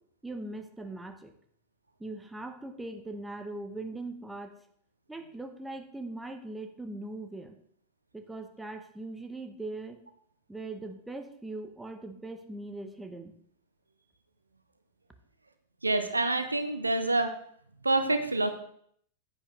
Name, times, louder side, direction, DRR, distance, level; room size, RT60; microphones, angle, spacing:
voice 1, 0.2-1.3 2.0-4.6 5.1-7.6 8.1-10.0 10.5-13.3, right 2 dB, 5° right, 6 dB, 1.0 m, -40 dB
voice 2, 15.8-17.4 17.8-18.5, right 2 dB, 80° right, 9 dB, 0.7 m, -27 dB
9.9 x 8.6 x 3.2 m, 0.65 s
figure-of-eight pair, 90°, 0 cm